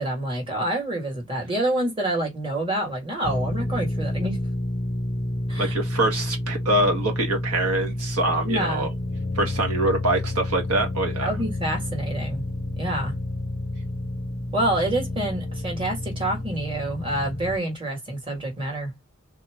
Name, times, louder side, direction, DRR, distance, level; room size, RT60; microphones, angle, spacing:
voice 1, 0.0-4.4 5.5-5.8 8.4-8.9 11.2-12.5 12.7-13.2 14.5-19.0, right 1 dB, 25° right, 1.6 m, -27 dB
sound 1, 3.2-17.6, left 1 dB, 30° left, 0.5 m, -29 dB
voice 2, 5.6-8.9 9.3-11.3, right 1 dB, 85° right, 1.6 m, -24 dB
3.6 x 3.0 x 3.3 m
head